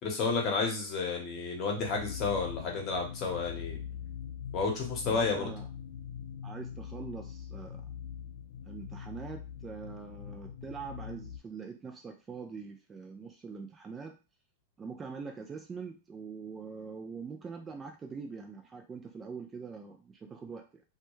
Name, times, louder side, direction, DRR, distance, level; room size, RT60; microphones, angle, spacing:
voice 1, 0.0-3.8 4.5-5.5, left 4 dB, 35° left, 1 dB, 1.0 m, -31 dB
sound 1, 1.8-11.4, left 8 dB, 70° left, 0.3 m, -43 dB
voice 2, 5.0-5.7 6.4-7.9 8.7-14.2 14.8-20.8, right 5 dB, 20° right, 4 dB, 0.3 m, -43 dB
2.2 x 2.2 x 3.0 m, 0.32 s
hypercardioid pair, 125°, 0 cm